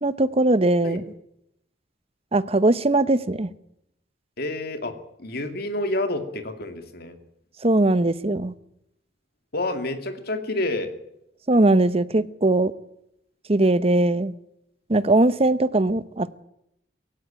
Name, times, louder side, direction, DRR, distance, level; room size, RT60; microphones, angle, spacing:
voice 1, 0.0-1.0 2.3-3.5 7.6-8.5 11.5-12.7 13.5-14.3 14.9-16.4, right 2 dB, 35° right, 0.9 m, -20 dB
voice 2, 4.4-7.2 9.5-10.9, left 2 dB, 60° left, 2.5 m, -29 dB
18.0 x 16.0 x 8.9 m
head